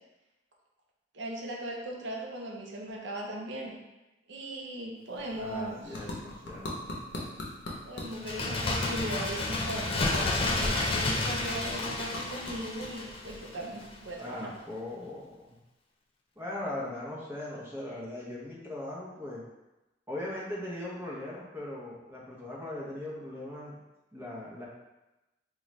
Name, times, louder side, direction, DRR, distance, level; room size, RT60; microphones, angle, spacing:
voice 1, 1.1-3.8 4.3-6.1 7.9-14.5, right 1 dB, 75° right, -1 dB, 0.7 m, -38 dB
sound 1, 5.0-14.4, left 1 dB, 75° left, 0.7 m, -43 dB
voice 2, 5.4-6.9 14.2-15.6 16.4-19.4 20.1-23.8 24.1-24.7, left 1 dB, 15° right, -5 dB, 0.7 m, -39 dB
Bird, 8.1-13.6 13.9-14.0, left 2 dB, 30° left, 0.4 m, -31 dB
3.8 x 2.3 x 3.1 m, 1.0 s
head